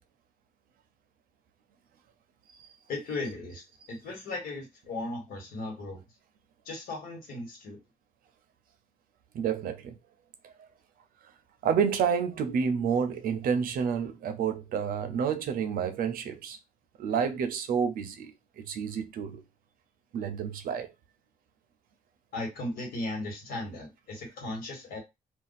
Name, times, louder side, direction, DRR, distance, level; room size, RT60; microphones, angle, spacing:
voice 1, 2.9-3.6 3.9-6.0 6.6-7.8 22.3-25.0, left 2 dB, 80° left, 1.5 m, -36 dB
voice 2, 9.3-10.0 10.4-10.5 11.6-16.6 17.0-18.3 18.6-19.4 20.1-20.9, right 7 dB, 75° right, 0.5 m, -29 dB
2.5 x 2.3 x 4.0 m
cardioid pair, 180°, 15 cm